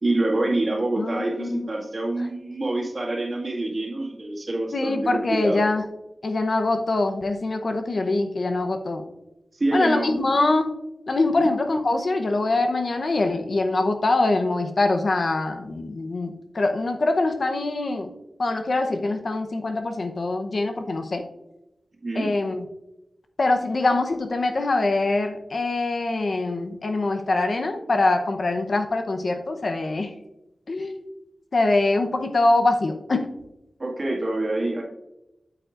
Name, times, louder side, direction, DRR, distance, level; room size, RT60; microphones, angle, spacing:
voice 1, 0.0-5.7 9.5-10.2 11.4-11.5 22.0-22.3 33.8-34.8, right 2 dB, 45° right, -3 dB, 2.0 m, -26 dB
voice 2, 1.0-1.7 2.2-2.3 4.7-5.8 6.2-9.0 9.7-10.7 11.1-18.1 18.4-21.2 22.1-22.6 23.4-30.1 30.7-31.0 31.5-33.3, left 2 dB, 60° left, 5 dB, 0.8 m, -23 dB
8.6 x 7.9 x 2.5 m, 0.90 s
wide cardioid pair, 90°, 0 cm